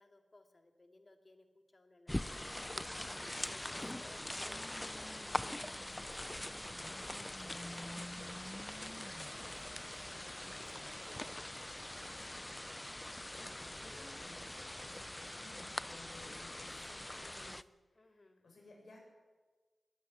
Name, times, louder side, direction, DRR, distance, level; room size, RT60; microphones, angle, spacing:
voice 1, 0.0-3.0 3.4-6.4 8.3-9.9 10.6-12.3 17.9-18.5, left 2 dB, 35° left, 6 dB, 2.6 m, -63 dB
sound 1, 2.1-17.6, left 1 dB, 15° left, 0.6 m, -43 dB
voice 2, 7.1-7.8 13.0-19.0, left 2 dB, 75° left, 0 dB, 7.8 m, -59 dB
21.0 x 13.5 x 9.8 m, 1.3 s
wide cardioid pair, 80°, 0 cm